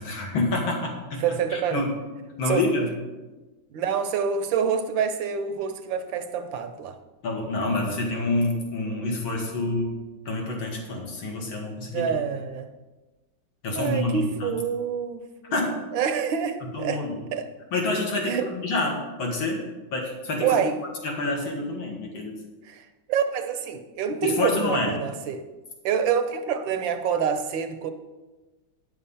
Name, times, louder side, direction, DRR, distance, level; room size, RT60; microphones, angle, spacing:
voice 1, 0.0-1.9 2.4-2.9 7.2-10.0 10.3-12.1 13.6-14.6 15.5-15.8 16.7-17.2 17.7-19.6 19.9-20.6 21.0-22.4 24.2-24.9, left 2 dB, 75° left, 0 dB, 2.5 m, -27 dB
voice 2, 1.2-1.8 2.5-2.6 3.7-7.0 11.9-12.7 13.8-15.2 15.9-17.0 17.3-17.5 18.2-18.5 20.4-20.8 22.7-22.8 23.1-25.4 25.8-27.9, right 7 dB, 70° right, 7 dB, 1.4 m, -26 dB
9.5 x 6.4 x 5.5 m, 1.2 s
omnidirectional pair, 2.3 m